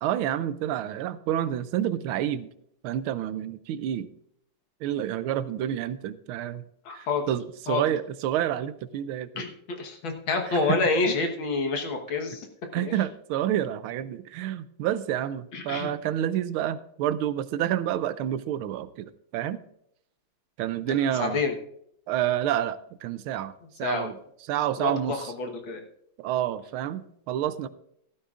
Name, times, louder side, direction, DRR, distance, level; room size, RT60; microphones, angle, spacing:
voice 1, 0.0-2.5 2.8-4.1 4.8-6.6 6.9-9.4 10.4-10.8 11.1-11.2 12.7-19.6 20.6-21.4 22.1-23.5 23.8-25.3 26.2-27.7, right 11 dB, 85° right, 15 dB, 1.4 m, -29 dB
voice 2, 6.9-7.2 7.7-7.8 9.4-9.5 9.8-12.5 12.8-12.9 15.5-15.9 21.2-21.5 23.8-24.1 24.8-25.8, left 4 dB, 70° left, 3 dB, 2.1 m, -28 dB
15.0 x 13.0 x 2.5 m, 0.72 s
omnidirectional pair, 2.3 m